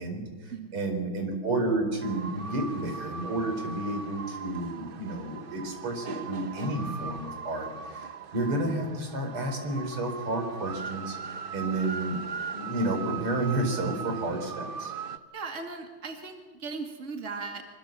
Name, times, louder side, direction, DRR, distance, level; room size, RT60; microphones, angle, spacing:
voice 1, 0.0-12.2 12.5-14.9, right 2 dB, 85° right, 5 dB, 5.2 m, -31 dB
sound 1, 2.0-15.2, right 6 dB, 70° right, 0.5 m, -39 dB
voice 2, 15.3-17.6, right 4 dB, 35° right, 4 dB, 2.6 m, -37 dB
25.0 x 25.0 x 7.5 m, 1.4 s
omnidirectional pair, 2.3 m